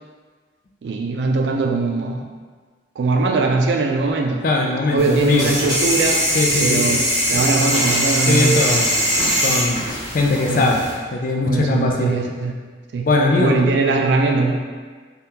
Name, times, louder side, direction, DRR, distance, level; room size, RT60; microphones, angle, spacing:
voice 1, 0.8-2.3 3.0-4.4 4.9-6.3 6.6-8.6 10.4-10.7 11.2-12.5 12.9-13.1 13.4-14.6, right 3 dB, 75° right, 3 dB, 0.3 m, -21 dB
voice 2, 4.4-5.5 6.3-7.0 8.3-8.9 9.3-9.8 10.1-10.8 11.1-12.1 13.0-13.6, left 2 dB, 50° left, 0 dB, 0.4 m, -20 dB
sound 1, 5.0-10.9, equal, 20° right, 1.0 m, -21 dB
3.5 x 2.3 x 2.8 m, 1.5 s
head